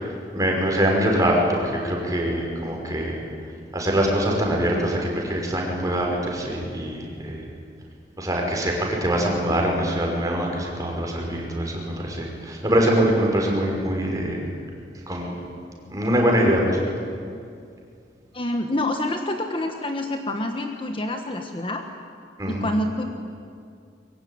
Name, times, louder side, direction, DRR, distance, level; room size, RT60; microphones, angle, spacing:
voice 1, 0.0-3.2 3.7-7.4 8.2-14.4 15.1-15.3 15.9-16.8 22.4-22.7, equal, 20° right, -1 dB, 5.9 m, -23 dB
voice 2, 18.3-21.8 22.5-23.0, left 1 dB, 30° left, 4 dB, 1.5 m, -27 dB
23.5 x 23.0 x 9.7 m, 2.3 s
head